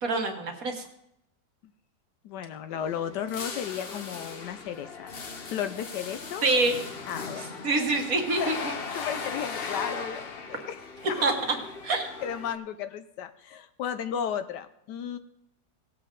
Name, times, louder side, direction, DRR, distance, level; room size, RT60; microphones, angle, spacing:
voice 1, 0.0-0.9 6.4-6.8 7.6-8.5 11.2-11.6 11.8-12.1, right 3 dB, 50° right, 3 dB, 1.6 m, -25 dB
voice 2, 2.2-5.1 5.5-6.4 7.1-7.4 8.4-11.2 12.2-15.2, left 8 dB, 75° left, 11 dB, 1.1 m, -34 dB
sound 1, 2.7-12.6, left 4 dB, 50° left, 0.7 m, -38 dB
18.0 x 7.6 x 3.8 m, 0.80 s
omnidirectional pair, 2.0 m